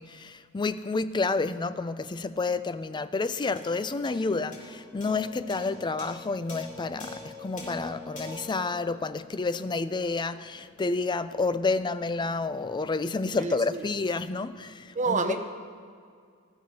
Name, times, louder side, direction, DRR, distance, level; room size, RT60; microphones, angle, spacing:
voice 1, 0.0-15.2, left 3 dB, 20° left, 12 dB, 0.4 m, -30 dB
sound 1, 3.6-10.2, left 3 dB, 40° left, 3.9 m, -44 dB
voice 2, 13.4-13.9 14.9-15.4, right 4 dB, 35° right, 5 dB, 0.9 m, -28 dB
18.5 x 13.5 x 2.9 m, 2.2 s
head